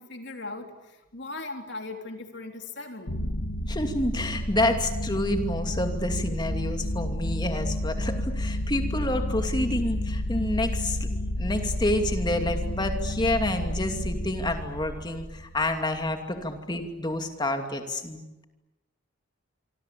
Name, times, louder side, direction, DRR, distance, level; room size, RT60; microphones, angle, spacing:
voice 1, 0.0-3.2, left 2 dB, 55° left, 4 dB, 3.6 m, -39 dB
sound 1, 3.1-15.9, left 1 dB, 85° left, 1.9 m, -30 dB
voice 2, 3.7-11.1 11.4-18.4, left 1 dB, 20° left, 5 dB, 2.6 m, -28 dB
26.0 x 25.5 x 8.6 m, 1.0 s
head